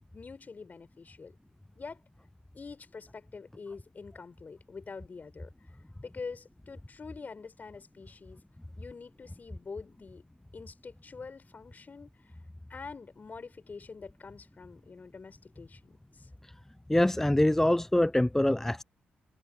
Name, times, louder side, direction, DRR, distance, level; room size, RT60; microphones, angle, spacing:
voice 1, 0.1-1.4 1.8-2.0 2.5-5.7 6.0-8.4 8.8-10.2 10.5-12.4 12.7-16.3, left 4 dB, 45° left, 7.0 m, -45 dB
voice 2, 16.9-18.8, left 1 dB, 10° left, 0.4 m, -24 dB
supercardioid pair, 50°, 4 cm